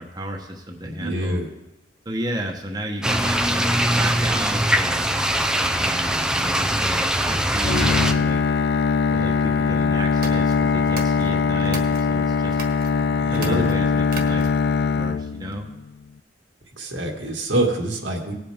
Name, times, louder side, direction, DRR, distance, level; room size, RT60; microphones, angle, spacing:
voice 1, 0.0-1.4 2.0-5.1 5.5-8.4 9.1-12.6 13.3-14.5 14.9-15.7, right 1 dB, 20° right, 1 dB, 1.1 m, -32 dB
voice 2, 0.8-1.5 13.2-13.6 16.8-18.3, right 1 dB, 85° right, 0 dB, 2.2 m, -25 dB
sound 1, 3.0-8.1, right 1 dB, 5° right, 0.5 m, -21 dB
Bowed string instrument, 7.6-15.8, left 5 dB, 60° left, 0.4 m, -21 dB
sound 2, 10.1-12.1 12.5-12.9 13.3-14.7, right 4 dB, 50° right, 1.5 m, -38 dB
18.5 x 7.9 x 3.6 m, 0.92 s
head